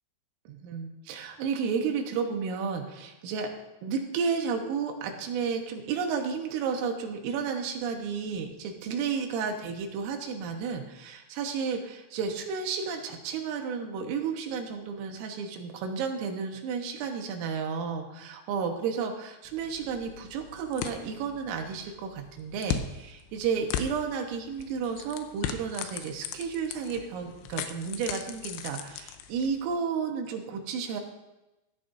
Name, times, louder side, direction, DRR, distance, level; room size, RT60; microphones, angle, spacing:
voice 1, 0.5-3.5 3.8-31.0, right 6 dB, 85° right, 3 dB, 3.8 m, -32 dB
sound 1, 19.5-29.8, left 9 dB, 80° left, 3.0 m, -39 dB
15.0 x 14.0 x 2.7 m, 0.98 s
omnidirectional pair, 5.8 m